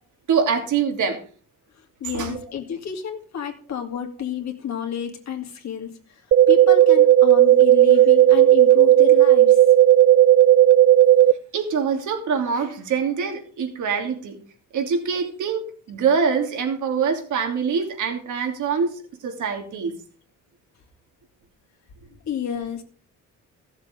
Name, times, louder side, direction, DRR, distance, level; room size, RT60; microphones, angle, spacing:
voice 1, 0.3-1.2 2.0-2.4 11.5-14.4 14.7-15.6 15.9-18.9 19.2-19.9, right 6 dB, 65° right, 4 dB, 2.9 m, -24 dB
voice 2, 2.0-5.9 6.5-9.6 22.3-22.8, left 8 dB, 55° left, 3 dB, 2.4 m, -30 dB
sound 1, 6.3-11.3, right 12 dB, 40° right, 0.4 m, -13 dB
14.5 x 7.4 x 5.1 m, 0.43 s
cardioid pair, 120°, 32 cm